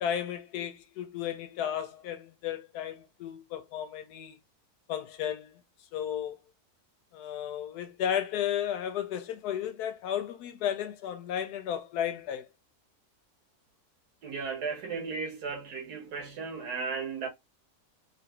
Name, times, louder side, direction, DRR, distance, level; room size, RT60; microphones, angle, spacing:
voice 1, 0.0-4.4 4.9-5.5 5.9-6.4 7.1-12.5, left 9 dB, 85° left, 1.2 m, -33 dB
voice 2, 14.2-17.3, right 5 dB, 85° right, 1.5 m, -35 dB
3.4 x 2.6 x 2.8 m
omnidirectional pair, 1.6 m